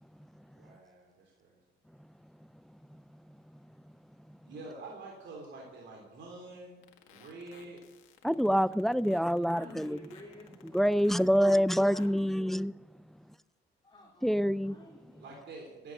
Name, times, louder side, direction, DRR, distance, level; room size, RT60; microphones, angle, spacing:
voice 1, 0.5-1.6 4.4-6.8 7.1-7.8 9.0-9.8 15.2-15.9, right 3 dB, 65° right, 3.6 m, -47 dB
sound 1, 6.8-12.2, left 10 dB, 90° left, 1.9 m, -57 dB
voice 2, 8.2-10.0 10.7-12.7 14.2-14.8, equal, ahead, 0.4 m, -26 dB
voice 3, 9.5-11.1 11.7-12.5 13.8-15.2, left 1 dB, 25° left, 3.6 m, -51 dB
14.0 x 11.0 x 6.5 m
cardioid pair, 90°, 20 cm